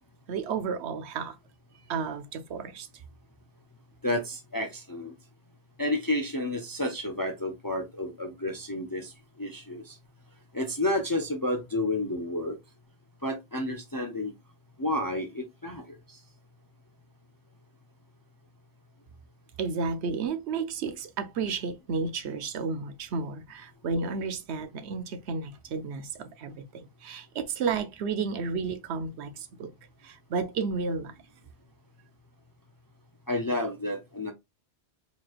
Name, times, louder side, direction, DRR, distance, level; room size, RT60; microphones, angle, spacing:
voice 1, 0.3-1.4 1.9-2.9 19.6-29.7 30.0-31.2, right 5 dB, 75° right, 0.9 m, -32 dB
voice 2, 4.0-5.1 5.8-9.1 9.4-10.0 10.5-12.6 13.2-14.3 14.8-16.2 33.3-34.3, left 1 dB, 30° left, 0.4 m, -30 dB
4.3 x 3.0 x 2.4 m
omnidirectional pair, 1.1 m